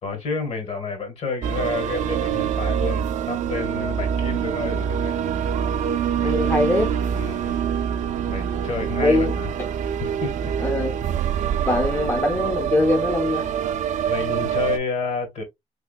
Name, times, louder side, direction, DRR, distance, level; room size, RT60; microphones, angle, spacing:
voice 1, 0.0-5.2 6.2-6.6 7.1-7.6 8.3-9.5 10.0-10.5 14.1-15.4, left 4 dB, 50° left, 1.5 m, -30 dB
sound 1, 1.4-14.8, right 8 dB, 65° right, 0.4 m, -25 dB
voice 2, 6.2-6.9 9.0-9.3 10.6-10.9 11.7-13.5, left 2 dB, 15° left, 0.6 m, -22 dB
3.5 x 2.9 x 2.3 m
cardioid pair, 155°, 14 cm